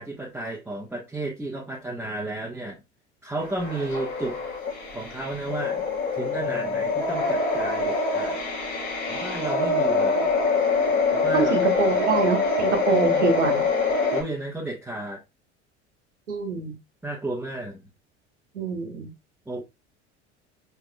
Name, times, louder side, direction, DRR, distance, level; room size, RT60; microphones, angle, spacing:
voice 1, 0.0-2.8 3.2-4.4 4.9-5.9 6.2-8.4 9.1-10.3 11.1-11.6 12.9-13.3 14.1-15.2 17.0-17.8 19.5-19.6, right 2 dB, 5° right, 1.1 m, -32 dB
sound 1, 3.4-14.2, left 4 dB, 50° left, 1.7 m, -25 dB
voice 2, 11.3-13.7 16.3-16.8 18.5-19.1, right 5 dB, 85° right, 1.1 m, -25 dB
4.8 x 3.4 x 2.2 m
hypercardioid pair, 75°, 35 cm